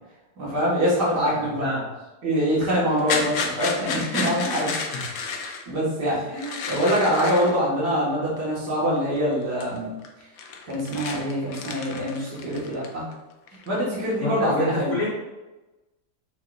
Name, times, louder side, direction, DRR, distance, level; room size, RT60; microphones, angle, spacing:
voice 1, 0.4-1.6 2.2-4.7 5.2-5.4 5.7-9.9 10.7-13.0 13.7-14.9, equal, 80° right, -8 dB, 2.5 m, -24 dB
voice 2, 1.3-1.9 4.9-5.2 6.0-6.3 14.2-15.1, left 2 dB, 80° left, -11 dB, 2.7 m, -29 dB
sound 1, 2.9-5.6 6.3-7.6 8.4-8.5 9.0-9.3 9.6-9.8 10.0-13.1 13.5-14.2, left 5 dB, 65° left, 1.1 m, -31 dB
6.7 x 5.7 x 2.6 m, 1.1 s
omnidirectional pair, 1.8 m